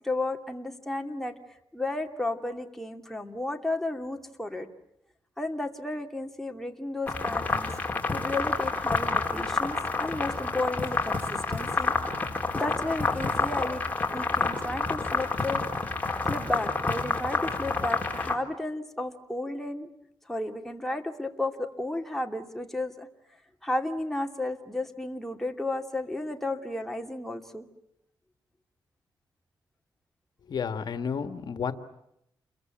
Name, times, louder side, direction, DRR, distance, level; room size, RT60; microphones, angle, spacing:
voice 1, 0.0-4.7 5.4-7.7 8.1-11.9 12.5-13.8 14.1-15.6 16.2-19.9 20.3-23.1 23.6-27.6, left 2 dB, 5° left, 3 dB, 2.6 m, -33 dB
sound 1, 7.1-18.3, left 3 dB, 20° left, 4.1 m, -29 dB
voice 2, 30.5-31.7, left 6 dB, 65° left, 9 dB, 1.8 m, -31 dB
29.0 x 22.5 x 9.1 m, 0.79 s
cardioid pair, 100°, 8 cm